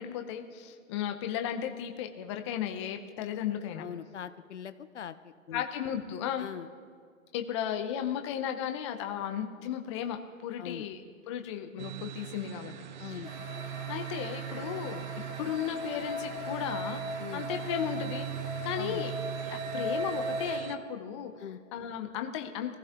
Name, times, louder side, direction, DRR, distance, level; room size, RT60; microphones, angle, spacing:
voice 1, 0.0-3.9 5.5-6.5 7.3-11.0 11.3-12.7 13.0-13.2 13.9-15.0 15.4-17.0 17.3-18.3 18.6-19.1 19.5-21.3 21.7-22.8, left 9 dB, 20° left, 6 dB, 0.9 m, -35 dB
voice 2, 3.8-5.6 6.4-6.7 10.6-10.8 13.0-13.3 17.2-17.4 18.8-19.0 21.4-21.6, left 9 dB, 60° left, 12 dB, 0.8 m, -41 dB
sound 1, 11.8-20.8, right 12 dB, 35° right, 0.5 m, -40 dB
sound 2, 13.2-20.6, equal, 85° right, 4.4 m, -38 dB
22.0 x 15.5 x 3.8 m, 2.1 s
hypercardioid pair, 145°, 41 cm